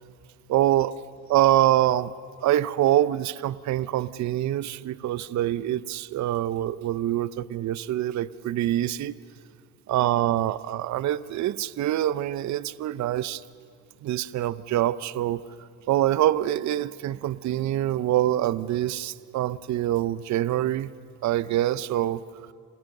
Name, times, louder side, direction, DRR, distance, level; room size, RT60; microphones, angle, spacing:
voice 1, 0.5-0.9 1.3-2.1 2.4-9.2 9.9-13.4 14.0-15.4 15.9-20.9 21.2-22.2, right 13 dB, 40° right, 17 dB, 0.6 m, -25 dB
28.0 x 18.0 x 6.6 m, 2.2 s
supercardioid pair, 85°, 44 cm